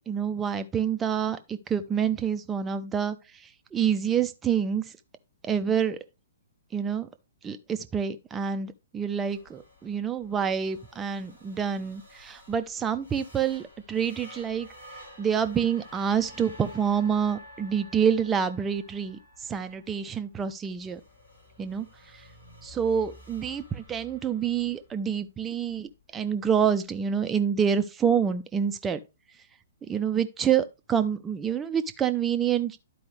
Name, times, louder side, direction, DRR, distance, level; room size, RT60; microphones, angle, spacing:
voice 1, 0.1-3.2 3.7-4.8 5.4-6.0 6.7-7.1 7.4-14.7 15.2-19.2 19.5-21.0 21.6-21.9 22.6-29.0 29.9-32.8, right 7 dB, 15° right, 0.6 m, -27 dB
sound 1, 9.3-27.0, equal, 80° left, 2.7 m, -51 dB
11.5 x 4.6 x 3.3 m
figure-of-eight pair, 120°, 0 cm